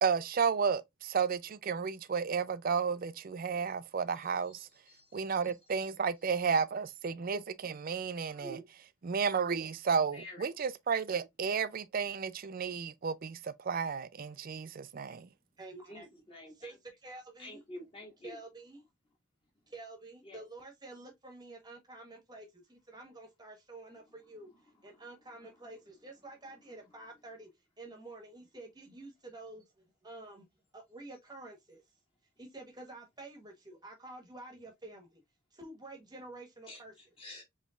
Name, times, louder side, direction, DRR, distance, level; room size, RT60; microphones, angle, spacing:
voice 1, 0.0-4.7 5.1-8.6 9.0-15.3, right 6 dB, 40° right, 0.4 m, -32 dB
voice 2, 4.1-5.6 6.2-6.3 8.1-8.7 10.1-10.6 15.9-16.8 17.4-18.4 20.2-20.4 24.9-25.1 25.3-25.6 36.7-37.4, equal, 25° left, 2.0 m, -50 dB
voice 3, 15.6-16.0 16.6-16.7 17.0-17.6 18.2-18.8 19.7-27.5 27.8-30.4 30.7-31.8 32.4-35.2 35.5-36.9, right 2 dB, 20° right, 1.2 m, -49 dB
5.2 x 3.2 x 2.4 m
head